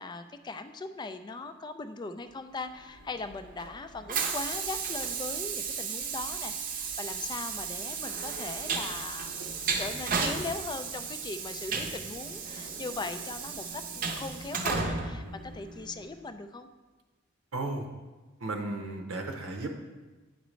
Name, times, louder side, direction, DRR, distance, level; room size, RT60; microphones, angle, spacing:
voice 1, 0.0-9.3 9.8-16.7 19.6-19.8, left 3 dB, 20° left, 9 dB, 0.3 m, -39 dB
Train, 3.0-16.1, right 5 dB, 45° right, 0.6 m, -34 dB
voice 2, 17.5-17.9 18.4-19.8, right 2 dB, 80° right, 3 dB, 0.7 m, -34 dB
9.2 x 5.1 x 3.1 m, 1.3 s
head